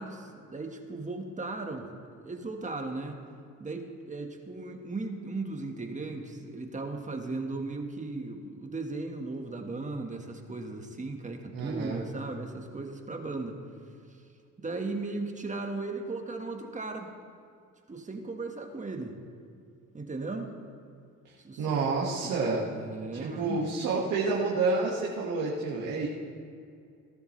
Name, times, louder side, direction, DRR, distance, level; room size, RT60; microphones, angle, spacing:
voice 1, 0.0-3.2 3.6-13.6 14.1-14.2 14.6-17.1 17.9-19.2 19.9-20.5 21.4-22.3 22.7-23.7, right 3 dB, 25° right, 4 dB, 1.5 m, -37 dB
voice 2, 11.5-12.0 21.6-22.6 23.1-26.1, right 3 dB, 85° right, -5 dB, 1.8 m, -29 dB
18.0 x 12.0 x 3.3 m, 2.4 s
cardioid pair, 90°, 30 cm